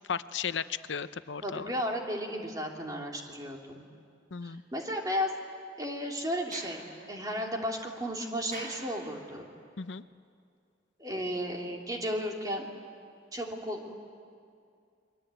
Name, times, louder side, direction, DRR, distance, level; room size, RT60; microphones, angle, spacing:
voice 1, 0.1-1.7 4.3-4.6 9.8-10.0, left 6 dB, 80° left, 13 dB, 0.7 m, -35 dB
voice 2, 1.4-3.9 4.4-5.3 5.8-9.5 11.0-12.7 13.3-13.9, equal, 20° right, 1 dB, 2.8 m, -34 dB
Sliding door, 6.3-9.6, right 2 dB, 40° right, 4.2 m, -49 dB
29.0 x 22.5 x 9.0 m, 2.3 s
head